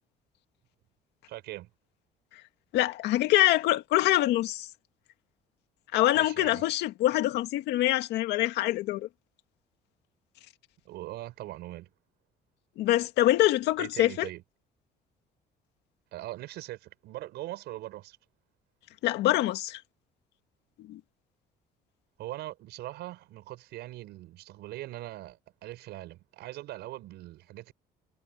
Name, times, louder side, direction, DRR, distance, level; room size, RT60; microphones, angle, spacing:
voice 1, 1.3-1.7 6.1-6.7 10.8-11.9 13.8-14.4 16.1-18.2 22.2-27.7, right 16 dB, 80° right, 6.5 m, -41 dB
voice 2, 2.7-4.7 5.9-9.1 12.8-14.3 19.0-19.8 20.8-21.0, left 15 dB, 85° left, 2.1 m, -25 dB
cardioid pair, 110°, 17 cm